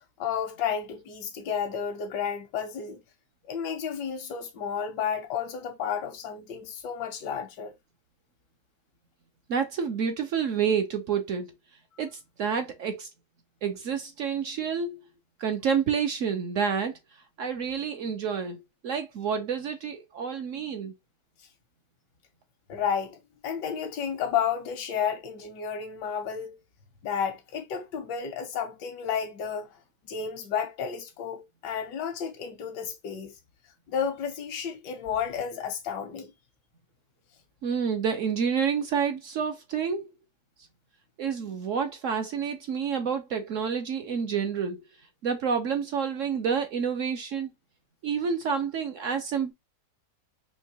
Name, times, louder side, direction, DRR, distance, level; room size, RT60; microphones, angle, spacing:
voice 1, 0.2-3.0 3.5-7.7 21.4-21.5 22.7-26.6 27.0-29.8 30.0-33.3 33.9-36.3, left 7 dB, 85° left, 1.4 m, -32 dB
voice 2, 9.5-11.5 12.0-13.1 13.6-15.0 15.4-16.9 17.4-20.9 37.6-40.1 41.2-44.8 45.2-47.5 48.0-49.5, right 6 dB, 65° right, 0.8 m, -29 dB
4.5 x 2.8 x 2.8 m
omnidirectional pair, 1.8 m